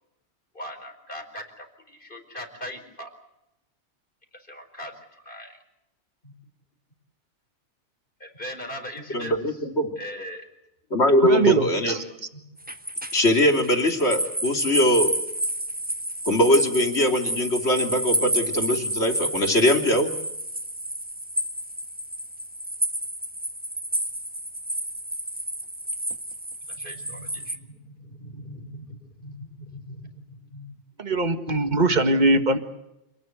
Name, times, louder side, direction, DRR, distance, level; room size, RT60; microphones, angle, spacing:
voice 1, 0.5-3.1 4.3-5.6 6.2-6.3 8.2-9.6 10.0-10.4 11.9-12.4 26.8-30.8, equal, 45° left, 6 dB, 5.0 m, -40 dB
voice 2, 9.1-9.9 10.9-12.0 13.1-15.1 16.3-20.1, left 1 dB, 65° left, 5 dB, 3.3 m, -21 dB
voice 3, 11.2-12.0 31.0-32.6, right 3 dB, 40° right, 8 dB, 2.0 m, -21 dB
sound 1, 12.6-27.6, right 1 dB, 10° right, 1.4 m, -30 dB
28.0 x 19.5 x 8.0 m, 0.85 s
omnidirectional pair, 1.2 m